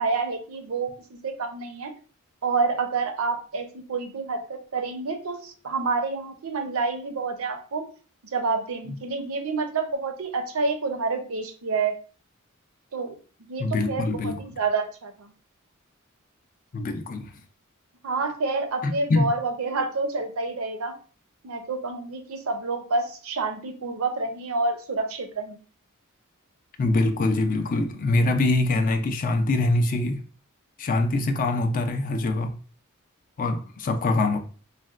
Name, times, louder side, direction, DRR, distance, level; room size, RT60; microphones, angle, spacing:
voice 1, 0.0-1.9 2.4-7.9 8.3-11.9 12.9-13.2 13.5-15.3 18.0-20.9 21.4-25.6, right 4 dB, 70° right, 0.6 m, -28 dB
voice 2, 13.6-14.4 16.7-17.3 18.8-19.3 26.8-30.2 30.8-32.6 33.4-34.4, left 2 dB, 40° left, 0.4 m, -24 dB
4.0 x 2.1 x 2.4 m
head